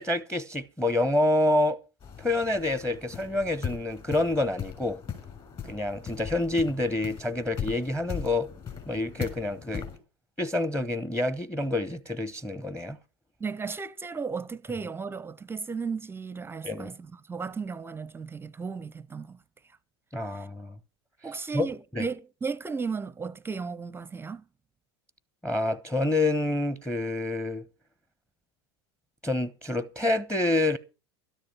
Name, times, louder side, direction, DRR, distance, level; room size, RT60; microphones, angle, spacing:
voice 1, 0.0-1.8 2.2-5.0 5.6-8.5 8.9-9.9 10.4-13.0 16.6-16.9 20.1-20.7 21.5-21.7 21.9-22.1 25.4-27.7 29.2-30.8, left 2 dB, 5° left, 0.9 m, -27 dB
sound 1, 2.0-10.0, left 7 dB, 35° left, 6.7 m, -39 dB
voice 2, 13.4-19.4 20.3-20.5 21.2-24.4, right 5 dB, 15° right, 0.6 m, -35 dB
13.0 x 10.5 x 5.6 m
hypercardioid pair, 90°, 14 cm